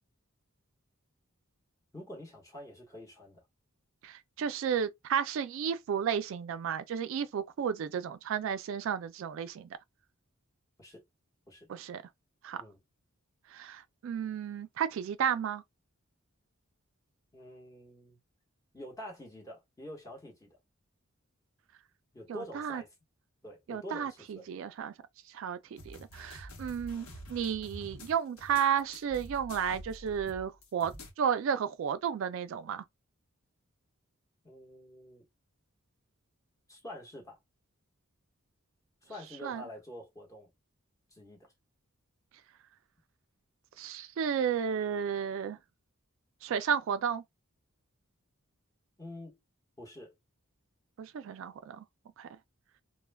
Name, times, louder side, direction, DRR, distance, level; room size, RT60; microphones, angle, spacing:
voice 1, 1.9-3.4 10.8-11.0 11.5-11.7 12.6-12.8 17.3-18.2 18.7-20.6 22.1-22.9 23.4-24.5 34.4-35.2 36.7-37.4 39.0-40.5 41.1-41.5 49.0-49.4 49.8-50.2, left 1 dB, 15° left, 1.0 m, -47 dB
voice 2, 4.0-9.7 11.7-12.0 12.4-12.6 13.5-15.6 22.3-22.8 23.7-24.9 25.3-32.8 39.4-39.6 43.8-45.6 46.4-47.2 51.0-51.8 52.2-52.3, right 8 dB, 65° right, 0.3 m, -33 dB
sound 1, 25.8-31.1, equal, 80° left, 0.8 m, -47 dB
2.2 x 2.1 x 3.3 m
head